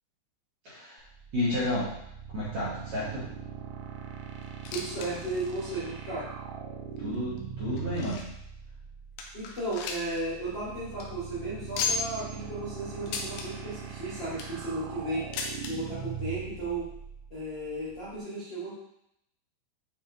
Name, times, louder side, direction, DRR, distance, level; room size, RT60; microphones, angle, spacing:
voice 1, 0.6-1.0 1.3-1.9 2.3-3.2 7.0-8.2, left 1 dB, 55° right, -12 dB, 2.1 m, -31 dB
sound 1, 1.0-18.2, right 8 dB, 80° right, 2.9 m, -41 dB
sound 2, 4.4-5.1 5.4-5.5 6.1-6.2 7.0-8.4 8.9-9.0 9.2-10.2 10.5-10.6 10.9-11.0 11.7-12.2 13.1-13.5 14.1-14.6 15.3-15.7 16.7-16.8 17.0-17.1 17.9-18.0, left 5 dB, 80° left, 2.6 m, -34 dB
voice 2, 4.7-6.3 9.3-15.2 15.7-16.9 17.3-18.7, right 2 dB, 35° left, -10 dB, 2.0 m, -34 dB
8.9 x 3.6 x 2.9 m, 0.77 s
omnidirectional pair, 5.3 m